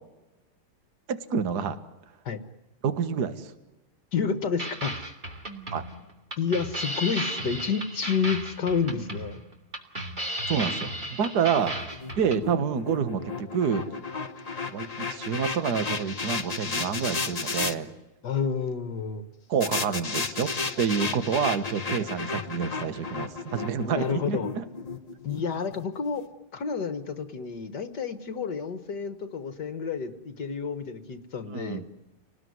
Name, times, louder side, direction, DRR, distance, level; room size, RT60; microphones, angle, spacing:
voice 1, 1.1-1.8 2.8-3.5 5.7-5.8 10.5-11.8 12.2-13.8 14.7-17.9 19.5-20.5 20.8-24.6 31.5-31.8, right 7 dB, 50° right, 11 dB, 1.9 m, -28 dB
voice 2, 4.1-4.9 6.4-9.4 18.2-19.3 23.8-24.5 25.2-26.2 26.5-31.8, left 6 dB, 55° left, 10 dB, 1.8 m, -30 dB
sound 1, 4.6-12.4, right 1 dB, 20° right, 2.9 m, -34 dB
sound 2, 11.6-17.7 19.6-25.8, left 4 dB, 35° left, 0.6 m, -33 dB
30.0 x 19.5 x 9.5 m, 1.1 s
omnidirectional pair, 2.4 m